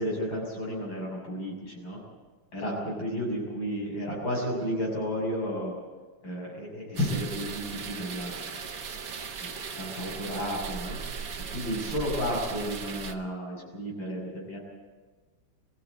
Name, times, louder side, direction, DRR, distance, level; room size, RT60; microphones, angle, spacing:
voice 1, 0.0-2.0 2.5-5.7 6.2-8.4 9.8-11.0 11.5-14.6, equal, 75° left, -2 dB, 7.6 m, -32 dB
sound 1, 7.0-13.2, right 6 dB, 50° right, 1.5 m, -38 dB
23.0 x 15.5 x 8.2 m, 1.3 s
omnidirectional pair, 2.1 m